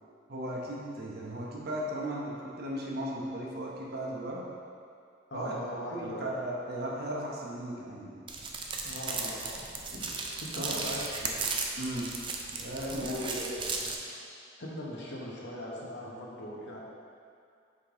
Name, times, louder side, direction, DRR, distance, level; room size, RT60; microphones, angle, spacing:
voice 1, 0.3-4.4 5.3-5.5 5.9-8.1 10.6-10.8 11.8-12.1 12.6-13.1, right 1 dB, 55° right, -3 dB, 0.9 m, -36 dB
voice 2, 5.3-6.4 8.8-11.5 12.9-13.7 14.6-16.8, left 1 dB, 65° left, -4 dB, 1.1 m, -40 dB
sound 1, 8.3-13.9, right 4 dB, 25° right, 0.4 m, -36 dB
5.5 x 5.2 x 3.8 m, 2.3 s
head